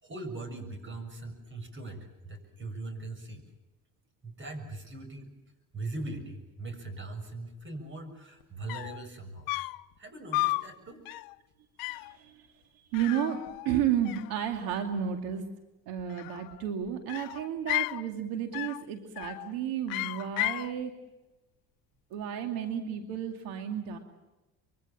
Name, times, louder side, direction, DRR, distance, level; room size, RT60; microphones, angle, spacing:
voice 1, 0.0-3.4 4.2-5.3 5.7-9.5 10.0-11.0, right 2 dB, 35° right, 9 dB, 6.9 m, -40 dB
sound 1, 8.4-8.5 8.7-9.0 9.5-9.9 10.3-10.7 11.1-11.4 11.8-12.1 12.9-13.8 14.1-14.8 16.0-16.6 17.1-18.0 18.5-18.9 19.2-19.5 19.9-20.7, left 21 dB, 75° left, 0.8 m, -34 dB
voice 2, 11.8-12.5 12.9-15.5 15.9-21.0 22.1-24.0, right 9 dB, 80° right, 5 dB, 2.5 m, -32 dB
25.5 x 24.0 x 7.4 m, 1.0 s
supercardioid pair, 90°, 35 cm